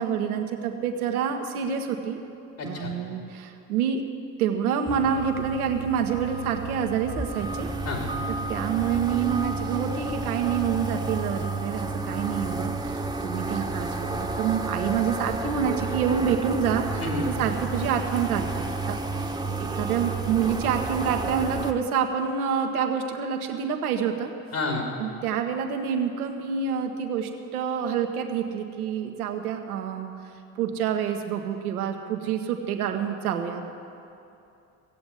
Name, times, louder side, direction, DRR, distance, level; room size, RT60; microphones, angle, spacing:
voice 1, 0.0-2.2 2.6-4.0 4.4-8.0 8.3-19.0 19.6-24.3 25.0-30.2 30.6-33.7, right 7 dB, 90° right, 5 dB, 1.1 m, -27 dB
voice 2, 2.6-2.9 7.8-8.0 17.0-17.3 24.5-24.8, left 3 dB, 55° left, 0 dB, 2.9 m, -29 dB
sound 1, 4.9-21.7, right 3 dB, 10° right, 1.0 m, -31 dB
16.5 x 7.9 x 8.2 m, 2.7 s
hypercardioid pair, 65°, 43 cm